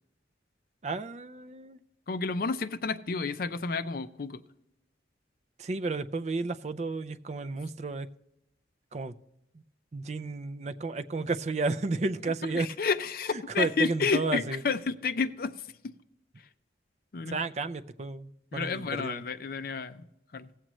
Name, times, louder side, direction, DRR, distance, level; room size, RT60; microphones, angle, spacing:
voice 1, 0.8-1.8 5.6-8.1 8.9-9.1 9.9-12.7 13.6-14.6 17.3-19.2, right 3 dB, 35° right, 0.4 m, -32 dB
voice 2, 2.1-4.4 12.3-15.7 16.4-16.5 17.1-17.4 18.5-20.1 20.3-20.5, left 4 dB, 50° left, 0.5 m, -31 dB
17.5 x 7.5 x 3.0 m
head